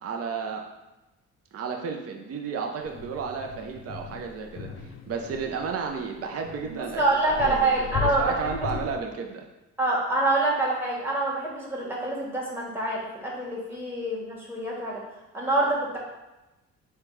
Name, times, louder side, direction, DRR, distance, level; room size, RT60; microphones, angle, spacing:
voice 1, 0.0-0.6 1.5-4.7 5.1-7.0 7.3-9.5, right 5 dB, 50° right, 3 dB, 0.7 m, -32 dB
sound 1, 2.8-9.0, left 6 dB, 45° left, 0.5 m, -37 dB
voice 2, 6.6-8.7 9.8-15.0 15.3-16.0, right 2 dB, 5° right, -5 dB, 1.4 m, -26 dB
4.4 x 2.3 x 4.6 m, 1.0 s
cardioid pair, 90°, 30 cm